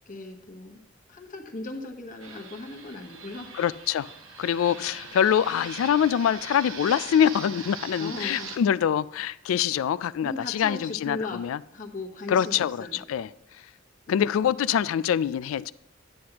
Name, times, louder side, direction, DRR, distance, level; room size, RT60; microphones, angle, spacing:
voice 1, 0.1-0.8 1.1-3.5 4.7-4.9 8.0-8.5 10.2-11.4 11.7-13.0 14.1-14.6, left 2 dB, 40° left, 1.1 m, -38 dB
Fixed-wing aircraft airplane, 2.2-8.6, right 5 dB, 75° right, 1.1 m, -41 dB
voice 2, 3.5-4.1 4.4-11.6 12.3-13.3 14.1-15.7, left 9 dB, 80° left, 0.3 m, -24 dB
10.0 x 9.4 x 2.9 m
head